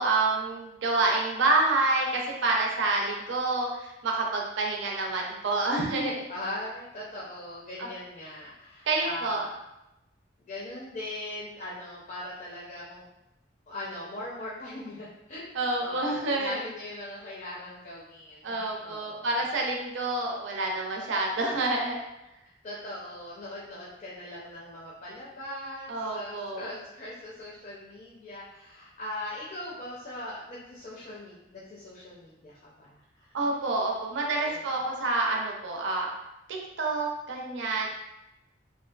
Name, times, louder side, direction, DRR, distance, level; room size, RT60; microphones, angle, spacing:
voice 1, 0.0-6.3 7.8-7.9 8.9-9.4 15.5-16.6 18.4-22.0 25.9-26.7 33.3-36.1 36.5-37.9, right 2 dB, 85° right, 0 dB, 0.5 m, -28 dB
voice 2, 6.3-9.6 10.5-13.1 13.7-19.4 22.6-33.4 34.4-34.7, left 1 dB, 45° left, -6 dB, 0.4 m, -40 dB
2.5 x 2.3 x 2.3 m, 0.90 s
head